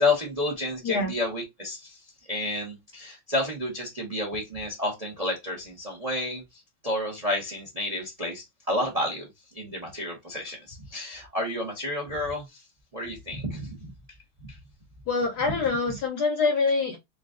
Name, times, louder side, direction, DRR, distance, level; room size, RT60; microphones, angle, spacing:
voice 1, 0.0-9.3 9.5-12.6 12.9-13.9 14.4-14.6, left 2 dB, 40° right, 0.5 m, -30 dB
voice 2, 15.1-17.0, left 4 dB, 65° left, 1.1 m, -25 dB
3.8 x 2.3 x 3.5 m
omnidirectional pair, 2.4 m